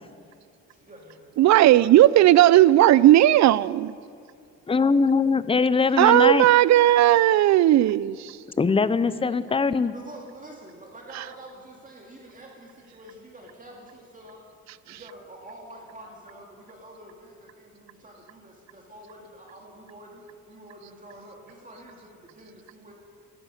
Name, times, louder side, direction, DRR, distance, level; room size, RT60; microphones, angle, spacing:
voice 1, 0.7-1.9 9.9-14.4 14.9-22.9, right 1 dB, 25° right, -1 dB, 2.2 m, -47 dB
voice 2, 1.4-3.9 6.0-8.4 14.9-15.0, right 14 dB, 65° right, 20 dB, 0.4 m, -16 dB
voice 3, 4.7-6.5 8.6-9.9, left 4 dB, 20° left, 15 dB, 0.5 m, -21 dB
13.5 x 12.5 x 6.4 m, 2.3 s
cardioid pair, 90°, 30 cm